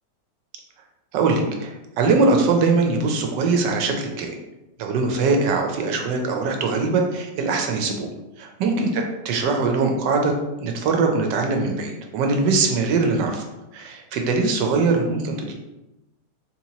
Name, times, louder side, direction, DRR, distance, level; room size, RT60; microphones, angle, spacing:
voice 1, 1.1-4.3 4.8-8.1 8.4-10.3 10.6-13.4 13.7-15.5, right 4 dB, 85° right, 3 dB, 1.3 m, -22 dB
4.1 x 2.9 x 2.8 m, 0.96 s
omnidirectional pair, 1.9 m